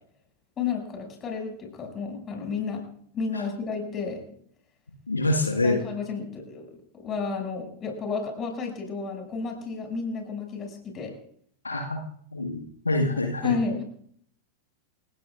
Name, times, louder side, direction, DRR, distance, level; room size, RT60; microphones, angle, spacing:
voice 1, 0.6-2.8 3.1-4.2 5.6-6.7 7.0-11.1 13.4-13.8, left 5 dB, 25° left, 2 dB, 6.5 m, -32 dB
voice 2, 5.1-5.8 11.6-12.0 12.3-13.6, left 2 dB, 80° left, 3 dB, 1.6 m, -26 dB
29.0 x 17.0 x 2.5 m, 0.63 s
figure-of-eight pair, 90°, 0 cm